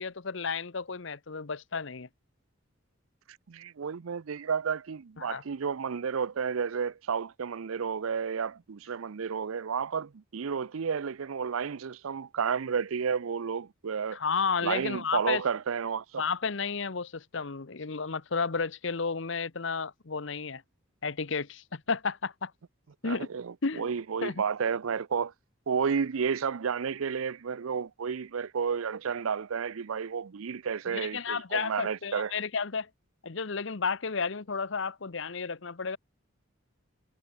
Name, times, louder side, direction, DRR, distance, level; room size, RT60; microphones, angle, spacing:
voice 1, 0.0-2.1 5.2-5.4 14.1-15.4 16.2-20.6 21.0-22.5 23.0-23.3 23.6-23.9 24.2-24.4 30.9-32.9 33.2-36.0, left 5 dB, 65° left, 0.9 m, -32 dB
voice 2, 3.5-14.2 14.6-16.2 23.0-25.3 25.7-32.3, right 6 dB, 85° right, 0.5 m, -31 dB
head